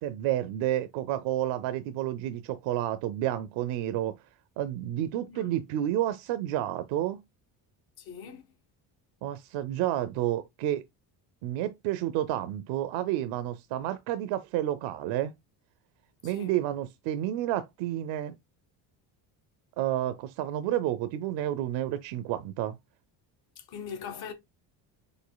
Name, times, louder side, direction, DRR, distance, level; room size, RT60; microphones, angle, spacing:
voice 1, 0.0-4.1 4.6-7.2 9.2-10.8 11.4-15.3 16.2-18.4 19.8-22.8, right 13 dB, 85° right, 0.7 m, -30 dB
voice 2, 8.0-8.4 16.2-16.5 23.6-24.3, left 7 dB, 55° left, 1.1 m, -41 dB
5.3 x 4.3 x 2.2 m
cardioid pair, 155°, 44 cm